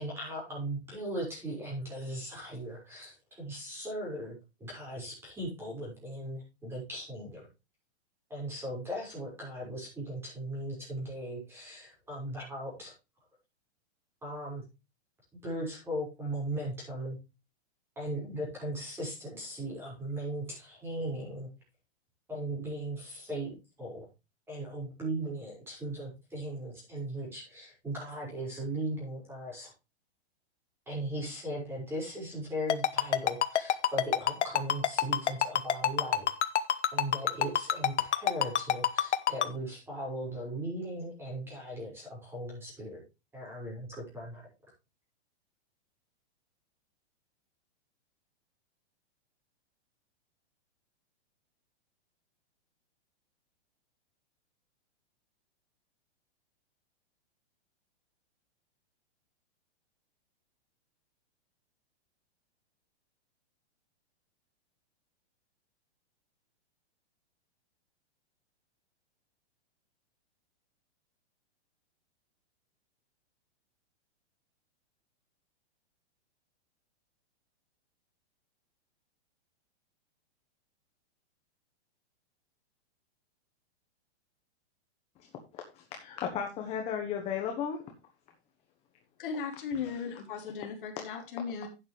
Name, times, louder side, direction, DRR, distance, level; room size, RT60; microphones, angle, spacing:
voice 1, 0.0-7.5 8.3-12.9 14.2-14.6 15.4-17.2 18.0-21.5 22.3-24.1 24.5-29.7 30.9-36.3 36.9-43.0 43.3-44.5, right 1 dB, 5° right, -3 dB, 5.9 m, -38 dB
Ringtone, 32.7-39.5, left 10 dB, 85° left, 1.2 m, -25 dB
voice 2, 85.5-87.8, left 8 dB, 20° left, 2 dB, 1.3 m, -35 dB
voice 3, 89.2-91.7, left 6 dB, 50° left, 3 dB, 3.1 m, -37 dB
11.5 x 8.8 x 3.3 m, 0.27 s
hypercardioid pair, 165°, 34 cm